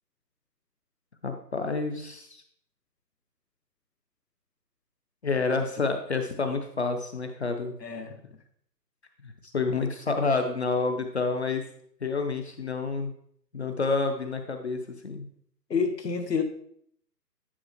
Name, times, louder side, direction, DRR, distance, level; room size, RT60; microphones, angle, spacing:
voice 1, 1.2-2.4 5.2-7.7 9.2-11.7 12.0-13.1 13.5-14.8 15.0-15.3, left 4 dB, 40° left, 6 dB, 0.7 m, -29 dB
voice 2, 7.8-8.2 15.7-16.4, left 5 dB, 75° left, 6 dB, 1.3 m, -28 dB
9.7 x 5.4 x 2.9 m, 0.65 s
figure-of-eight pair, 145°, 50 cm